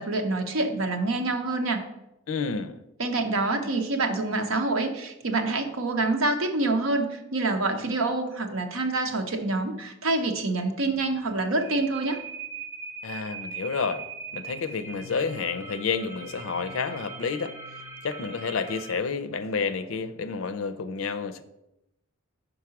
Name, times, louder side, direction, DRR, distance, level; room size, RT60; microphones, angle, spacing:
voice 1, 0.0-1.8 3.0-12.2, right 2 dB, 75° right, 5 dB, 0.9 m, -26 dB
voice 2, 2.3-2.8 13.0-14.0 14.3-17.5 18.0-21.4, left 5 dB, 75° left, 12 dB, 0.5 m, -30 dB
sound 1, 10.9-19.0, right 5 dB, 10° right, 0.6 m, -41 dB
5.2 x 4.7 x 5.8 m, 0.89 s
head